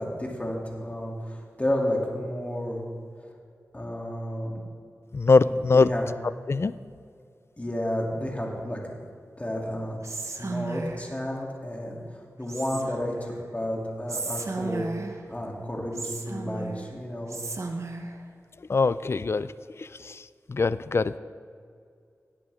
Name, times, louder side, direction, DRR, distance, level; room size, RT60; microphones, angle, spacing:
voice 1, 0.0-2.8 3.7-4.6 5.4-6.0 7.6-8.8 9.4-10.0 10.4-14.8 15.3-17.4, left 1 dB, 25° left, -2 dB, 2.6 m, -31 dB
voice 2, 5.1-5.9 6.5-6.7 18.7-19.5 19.8-20.2 20.5-21.2, left 4 dB, 50° left, 16 dB, 0.4 m, -22 dB
Whispering, 10.0-11.1 12.5-13.2 14.1-15.3 16.0-16.9 17.3-18.2, right 3 dB, 60° right, 1.0 m, -34 dB
17.5 x 8.3 x 3.5 m, 2.3 s
cardioid pair, 45°, 6 cm